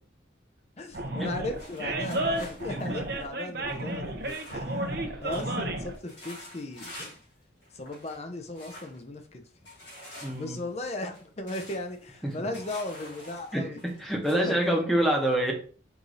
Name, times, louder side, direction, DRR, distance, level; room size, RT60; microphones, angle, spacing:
voice 1, 0.8-4.9 5.2-7.2 7.7-9.4 10.3-13.8 14.3-14.9, left 2 dB, 35° left, 6 dB, 0.6 m, -36 dB
Animal, 0.9-6.0, right 1 dB, 60° right, 0.7 m, -32 dB
sound 1, 1.5-5.0 5.3-5.6 5.9-7.3 7.6-8.2 8.5-9.0 9.6-14.4, left 1 dB, 85° left, 2.3 m, -47 dB
voice 2, 10.2-10.6 12.2-12.5 13.5-13.7 14.0-15.5, right 1 dB, ahead, 0 dB, 0.9 m, -26 dB
4.8 x 2.7 x 3.9 m, 0.40 s
head